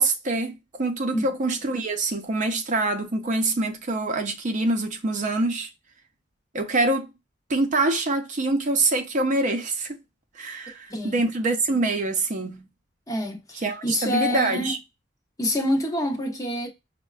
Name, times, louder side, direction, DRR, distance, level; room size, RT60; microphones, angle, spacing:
voice 1, 0.0-5.7 6.5-7.1 7.5-9.9 10.4-12.7 13.5-14.8, right 2 dB, 45° right, 0.6 m, -25 dB
voice 2, 10.9-11.2 13.1-14.7 15.4-16.7, left 1 dB, 20° left, 0.7 m, -27 dB
5.4 x 2.1 x 2.3 m
head